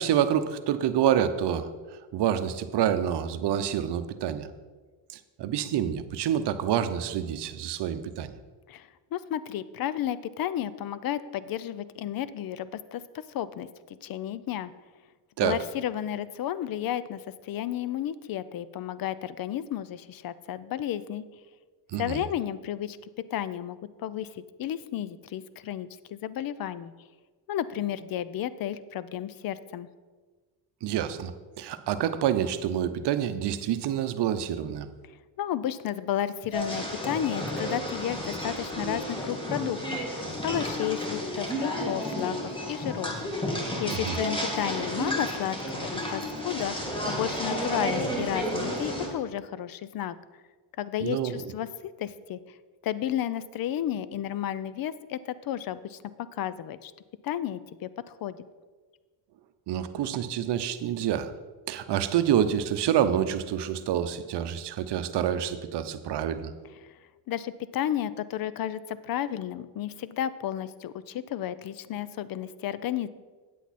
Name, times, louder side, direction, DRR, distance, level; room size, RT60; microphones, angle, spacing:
voice 1, 0.0-1.7 2.1-4.5 5.1-8.3 15.4-15.6 21.9-22.3 30.8-34.9 43.9-44.2 51.0-51.4 59.7-61.3 61.7-66.5, right 10 dB, 60° right, 11 dB, 0.8 m, -27 dB
voice 2, 8.7-13.0 13.3-13.7 14.0-14.7 15.4-21.2 22.0-26.9 27.5-29.9 35.4-42.4 42.7-43.1 43.8-50.2 50.8-52.4 52.8-56.0 56.3-56.9 57.2-57.9 58.2-58.4 67.3-73.1, left 11 dB, 50° left, 16 dB, 0.5 m, -32 dB
sound 1, 36.5-49.1, equal, 10° left, 1.9 m, -32 dB
9.2 x 8.2 x 4.2 m, 1.4 s
cardioid pair, 105°, 48 cm